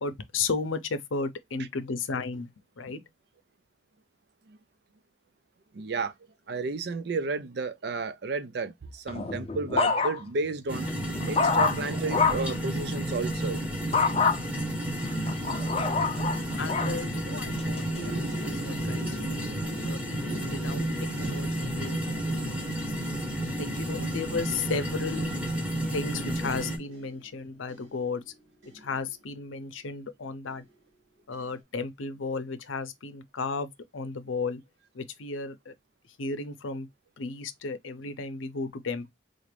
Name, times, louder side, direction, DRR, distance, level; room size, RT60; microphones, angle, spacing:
voice 1, 0.0-2.5 2.8-3.0 16.6-19.4 19.8-22.8 23.6-25.5 25.9-28.2 28.7-30.6 31.3-34.6 34.9-35.7 36.2-36.9 37.2-39.1, left 4 dB, 85° left, 0.7 m, -34 dB
voice 2, 5.7-6.1 6.5-10.8 11.2-13.6 17.0-17.1, right 3 dB, 55° right, 0.4 m, -32 dB
sound 1, 9.1-10.4 10.9-12.6 13.9-14.4 15.0-17.0 17.6-18.0, left 5 dB, 30° left, 0.5 m, -26 dB
sound 2, 10.7-26.8, right 1 dB, 5° right, 0.8 m, -31 dB
sound 3, 17.9-29.8 30.5-30.9 31.3-31.6, right 1 dB, 85° right, 2.3 m, -46 dB
3.8 x 2.5 x 3.3 m
head